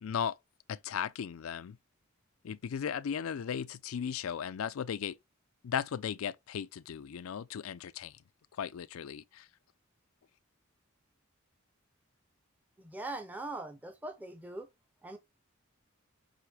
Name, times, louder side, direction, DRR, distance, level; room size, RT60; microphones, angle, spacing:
voice 1, 0.0-0.4 0.7-1.8 2.4-5.2 5.6-8.1 8.6-9.5, left 8 dB, 80° left, 0.4 m, -36 dB
voice 2, 12.8-14.7 15.0-15.2, right 2 dB, 10° right, 0.7 m, -41 dB
8.0 x 3.1 x 4.8 m
head